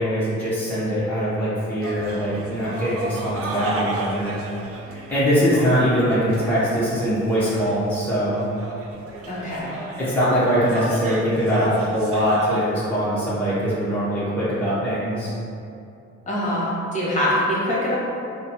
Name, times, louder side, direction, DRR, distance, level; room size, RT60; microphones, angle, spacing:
voice 1, 0.0-4.4 4.8-8.4 10.0-15.3, equal, 5° left, -12 dB, 0.9 m, -22 dB
sound 1, 1.8-12.6, right 2 dB, 50° right, 0.6 m, -34 dB
voice 2, 9.3-9.8 16.3-17.9, equal, 25° left, -7 dB, 1.3 m, -24 dB
3.9 x 2.2 x 4.1 m, 2.6 s
cardioid pair, 90°, 30 cm